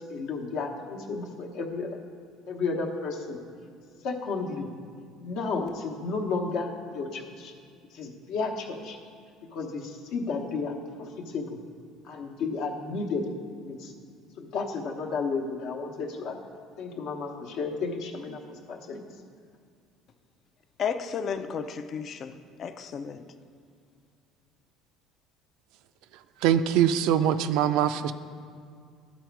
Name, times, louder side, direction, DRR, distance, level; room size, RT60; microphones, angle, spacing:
voice 1, 0.0-1.9 2.5-3.4 4.0-4.7 5.2-7.5 7.9-9.0 9.5-11.6 12.1-13.2 13.6-13.9 14.4-16.4 16.8-18.4 18.7-19.0, left 4 dB, 70° left, 2 dB, 0.9 m, -32 dB
voice 2, 20.8-23.3, left 7 dB, 45° left, 10 dB, 0.4 m, -33 dB
voice 3, 26.4-28.1, right 9 dB, 75° right, 11 dB, 0.3 m, -23 dB
11.5 x 4.1 x 4.6 m, 2.2 s
supercardioid pair, 110°, 0 cm